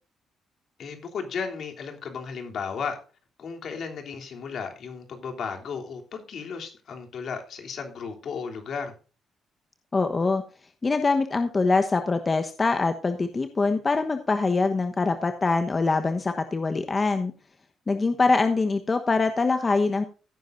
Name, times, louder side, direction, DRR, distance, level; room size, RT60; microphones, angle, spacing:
voice 1, 0.8-3.0 3.4-8.9, left 5 dB, 60° left, 3 dB, 3.1 m, -34 dB
voice 2, 9.9-10.4 10.8-17.3 17.9-20.0, left 3 dB, 30° left, 7 dB, 1.1 m, -24 dB
16.0 x 9.7 x 2.6 m, 0.36 s
cardioid pair, 90°, 0 cm